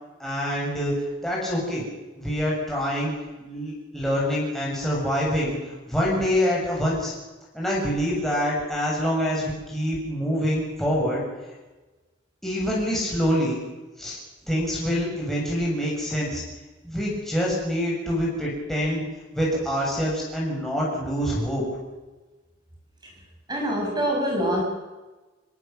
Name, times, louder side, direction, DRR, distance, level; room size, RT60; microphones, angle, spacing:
voice 1, 0.2-0.9 1.2-1.9 2.2-3.1 3.4-5.6 5.9-7.1 7.5-11.2 12.4-13.6 14.0-14.2 14.5-16.4 16.8-19.0 19.3-21.6, equal, ahead, -5 dB, 7.3 m, -25 dB
voice 2, 23.5-24.6, equal, 20° right, -1 dB, 6.9 m, -24 dB
27.5 x 17.5 x 7.5 m, 1.2 s
head